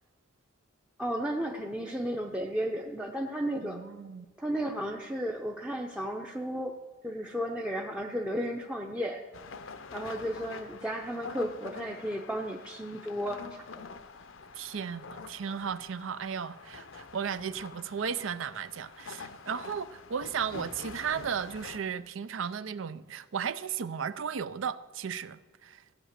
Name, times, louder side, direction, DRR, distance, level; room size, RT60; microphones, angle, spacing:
voice 1, 1.0-3.8 4.4-6.8 7.0-9.2 9.9-13.7, equal, 5° right, 0.6 m, -33 dB
voice 2, 3.6-4.3 14.5-25.8, right 7 dB, 85° right, 0.5 m, -35 dB
sound 1, 9.3-21.8, left 4 dB, 80° left, 0.7 m, -46 dB
14.5 x 8.7 x 6.6 m
head